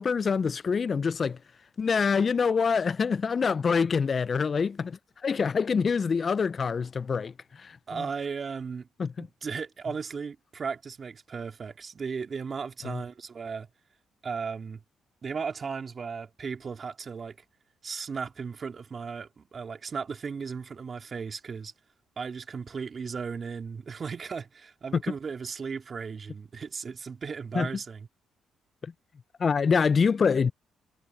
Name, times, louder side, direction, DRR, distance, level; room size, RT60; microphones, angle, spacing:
voice 1, 0.0-1.4 1.8-8.0 9.0-9.3 12.8-13.0 24.9-25.0 27.5-27.7 28.8-28.9 29.4-30.5, left 5 dB, 40° left, 0.3 m, -26 dB
voice 2, 7.9-8.9 9.2-13.7 14.2-14.8 15.2-17.4 17.8-21.7 22.2-28.1, right 5 dB, 40° right, 3.0 m, -36 dB
cardioid pair, 90°, 0 cm